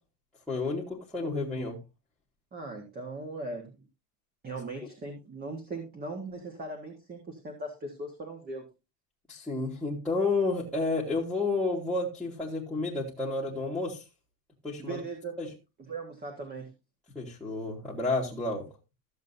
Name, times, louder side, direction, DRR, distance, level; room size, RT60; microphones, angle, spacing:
voice 1, 0.5-1.8 9.3-14.0 14.6-15.0 15.4-15.5 17.1-18.6, left 3 dB, ahead, -8 dB, 1.7 m, -31 dB
voice 2, 2.5-3.8 4.4-8.6 14.8-15.4 15.9-16.7, right 2 dB, 20° right, 2 dB, 1.6 m, -39 dB
14.5 x 7.4 x 2.7 m, 0.26 s
cardioid pair, 165°, 47 cm